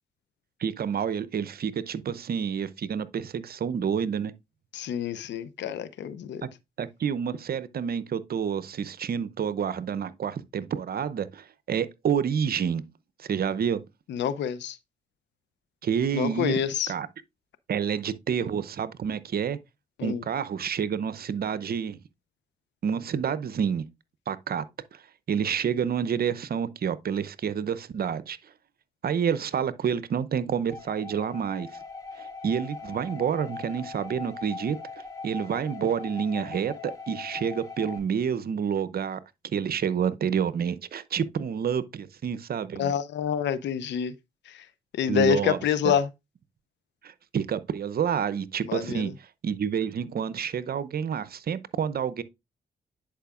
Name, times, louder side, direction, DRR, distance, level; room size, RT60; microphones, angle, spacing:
voice 1, 0.6-4.3 6.8-12.8 13.2-13.8 15.8-16.6 16.9-17.1 17.7-19.6 20.0-22.0 22.8-23.8 24.3-24.6 25.3-28.4 29.0-31.7 32.2-34.8 35.2-39.2 39.5-42.9 45.1-45.6 45.8-45.9 47.0-49.1 49.4-52.2, right 7 dB, 55° right, 0.7 m, -28 dB
voice 2, 4.7-6.5 14.1-14.8 16.1-16.9 20.0-20.2 42.8-44.1 44.9-46.1 48.7-49.1, left 8 dB, 75° left, 0.7 m, -27 dB
sound 1, 30.7-38.0, left 4 dB, 20° left, 3.3 m, -40 dB
10.0 x 4.9 x 2.4 m
supercardioid pair, 45°, 18 cm